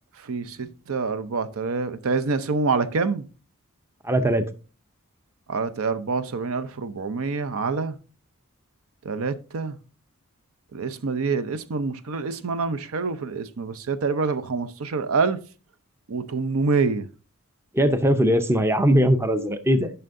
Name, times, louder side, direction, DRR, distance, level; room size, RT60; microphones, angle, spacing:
voice 1, 0.2-3.2 5.5-8.0 9.0-9.8 10.7-15.4 16.1-17.1, right 4 dB, 70° right, 0.6 m, -26 dB
voice 2, 4.0-4.5 17.7-19.9, equal, 10° right, 0.5 m, -20 dB
11.0 x 5.7 x 2.6 m
head